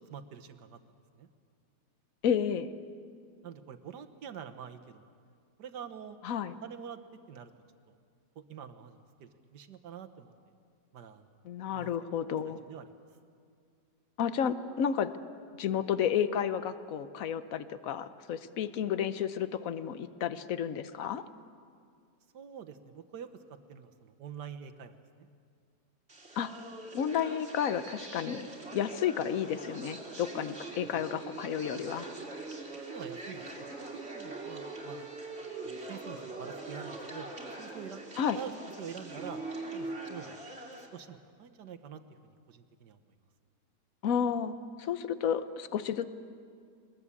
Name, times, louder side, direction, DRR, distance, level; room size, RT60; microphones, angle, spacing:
voice 1, 0.1-0.8 1.2-1.3 3.4-5.1 5.6-6.2 6.6-7.0 7.3-7.5 7.9-8.0 8.3-10.3 10.9-11.3 11.7-11.9 12.5-12.9 22.3-23.3 23.7-25.3 30.8-31.0 32.9-33.5 33.9-35.1 35.6-38.0 38.3-39.4 39.7-40.4 40.9-43.0, right 8 dB, 80° right, 8 dB, 1.7 m, -46 dB
voice 2, 2.2-2.7 6.2-6.5 11.4-12.6 14.2-15.1 15.6-21.2 26.4-26.5 26.9-32.1 38.2-38.4 44.0-46.1, left 8 dB, 60° left, 12 dB, 1.2 m, -31 dB
sound 1, 26.1-40.9, right 2 dB, 40° right, 3.0 m, -42 dB
21.5 x 21.0 x 8.4 m, 2.2 s
omnidirectional pair, 1.8 m